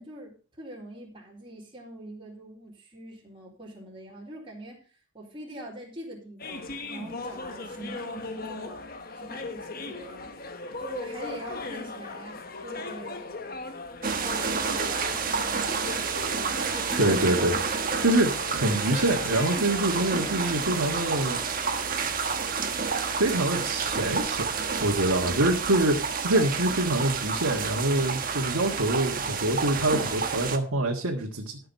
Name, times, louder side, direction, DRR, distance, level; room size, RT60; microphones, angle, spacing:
voice 1, 0.0-4.9 5.1-8.8 9.1-10.3 10.8-13.2 14.2-16.3, right 1 dB, 25° right, -3 dB, 4.1 m, -43 dB
sound 1, 6.4-21.3, left 3 dB, 45° left, 1.2 m, -38 dB
sound 2, 14.0-30.6, right 5 dB, 40° right, 1.4 m, -29 dB
voice 2, 17.0-17.6 18.0-21.4 23.1-24.5 24.8-31.6, right 1 dB, 85° right, -1 dB, 1.9 m, -25 dB
13.5 x 6.7 x 5.5 m, 0.38 s
head